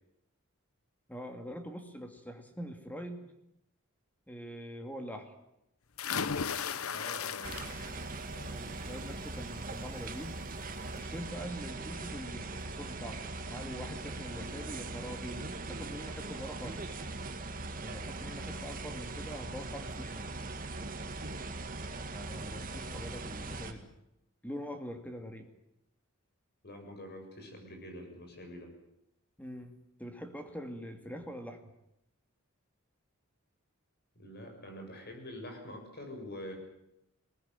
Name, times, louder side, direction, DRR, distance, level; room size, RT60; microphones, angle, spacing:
voice 1, 1.1-3.3 4.3-5.3 8.5-10.4 11.0-17.0 17.8-20.3 22.1-23.9 24.4-25.5 29.4-31.7, equal, 10° left, 6 dB, 2.5 m, -44 dB
sound 1, 6.0-8.1 8.5-8.9 10.3-10.4 10.8-10.9, left 6 dB, 90° left, 0.9 m, -35 dB
voice 2, 6.9-7.6 8.3-8.6 26.6-28.7 34.2-36.5, left 1 dB, 50° left, 4 dB, 7.0 m, -45 dB
sound 2, 7.4-23.7, right 2 dB, 40° right, 2.1 m, -40 dB
21.5 x 19.0 x 9.3 m, 0.83 s
head